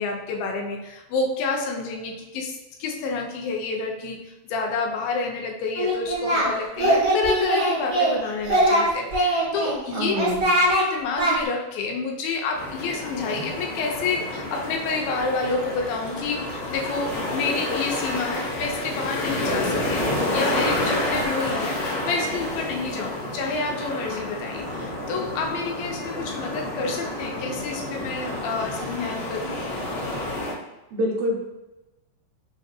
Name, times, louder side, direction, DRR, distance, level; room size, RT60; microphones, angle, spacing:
voice 1, 0.0-10.1 10.8-21.8 22.0-29.6, left 4 dB, 80° left, 1 dB, 2.3 m, -29 dB
Singing, 5.8-6.5 6.8-8.1 8.4-9.7 10.2-10.8 11.2-11.3, right 1 dB, 60° right, 1.0 m, -21 dB
voice 2, 9.9-10.5 30.9-31.4, equal, 85° right, -1 dB, 2.3 m, -25 dB
sound 1, 12.5-30.5, left 1 dB, 65° left, 1.6 m, -29 dB
5.9 x 2.4 x 2.6 m, 1.0 s
omnidirectional pair, 4.1 m